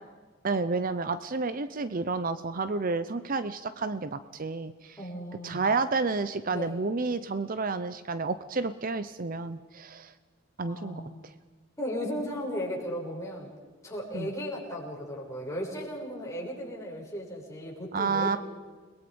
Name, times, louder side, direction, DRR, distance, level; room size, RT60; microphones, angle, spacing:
voice 1, 0.4-5.0 5.4-10.1 10.6-11.3 14.1-14.3 17.9-18.4, right 4 dB, 40° right, 12 dB, 0.7 m, -30 dB
voice 2, 5.0-5.6 6.5-6.7 10.7-11.2 11.8-13.5 13.8-18.4, equal, 15° left, -3 dB, 6.8 m, -36 dB
30.0 x 21.5 x 5.3 m, 1.4 s
head